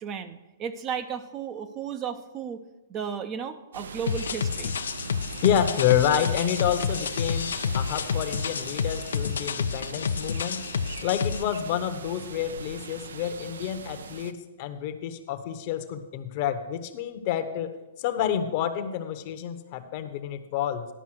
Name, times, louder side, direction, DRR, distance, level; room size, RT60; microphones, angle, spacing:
voice 1, 0.0-2.6 2.9-4.7, right 7 dB, 25° right, 10 dB, 0.5 m, -34 dB
sound 1, 3.7-14.3, right 5 dB, 85° right, 0.5 m, -41 dB
sound 2, 4.1-11.4, left 6 dB, 85° left, 0.4 m, -29 dB
voice 2, 5.4-10.6 11.0-17.7 18.0-20.9, left 10 dB, 45° left, 9 dB, 0.8 m, -28 dB
11.0 x 5.5 x 6.1 m, 1.0 s
hypercardioid pair, 140°, 0 cm